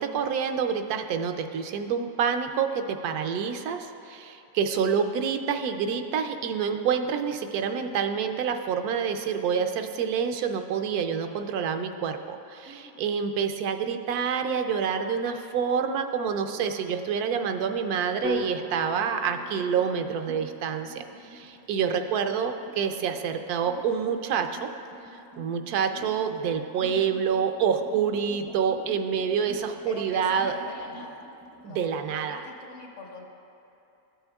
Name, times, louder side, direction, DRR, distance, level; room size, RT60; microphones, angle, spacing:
voice 1, 0.0-24.7 25.4-30.5 31.6-32.4, right 7 dB, 85° right, 6 dB, 1.1 m, -27 dB
voice 2, 12.6-13.0 29.8-31.2 31.6-33.2, left 2 dB, 60° left, 1 dB, 1.1 m, -43 dB
sound 1, 18.2-22.3, left 2 dB, 75° left, 1.8 m, -39 dB
sound 2, 18.6-31.7, equal, 40° right, 0.3 m, -48 dB
13.5 x 7.9 x 2.3 m, 2.9 s
omnidirectional pair, 1.6 m